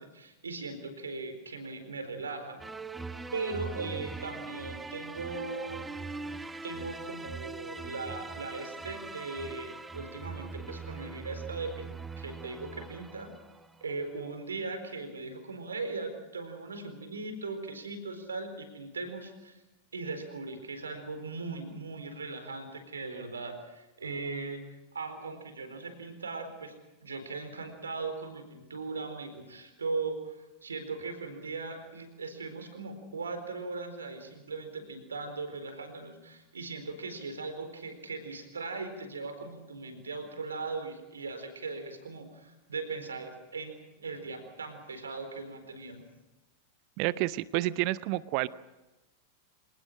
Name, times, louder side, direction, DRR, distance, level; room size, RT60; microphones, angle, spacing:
voice 1, 0.0-2.6 3.3-5.9 6.6-13.3 13.8-19.6 19.9-24.6 24.9-26.7 27.0-46.0, right 3 dB, 70° right, 8 dB, 4.3 m, -39 dB
sound 1, 2.6-13.9, right 3 dB, 10° right, 1.0 m, -41 dB
voice 2, 47.0-48.5, right 17 dB, 45° right, 19 dB, 0.7 m, -29 dB
27.5 x 19.0 x 6.3 m, 1.0 s
figure-of-eight pair, 90°, 0 cm